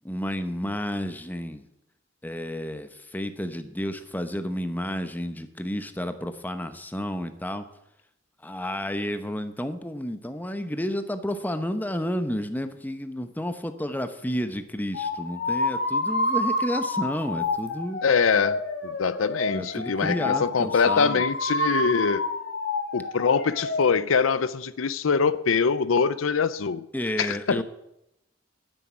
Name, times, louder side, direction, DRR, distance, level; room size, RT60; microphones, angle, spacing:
voice 1, 0.0-1.6 2.2-7.7 8.4-18.0 19.5-21.2 26.9-27.6, equal, 10° left, 0.9 m, -31 dB
sound 1, 14.9-23.8, left 2 dB, 60° left, 2.0 m, -29 dB
voice 2, 18.0-22.3 22.9-26.9 27.2-27.6, left 5 dB, 75° left, 0.6 m, -24 dB
10.0 x 7.6 x 9.5 m
head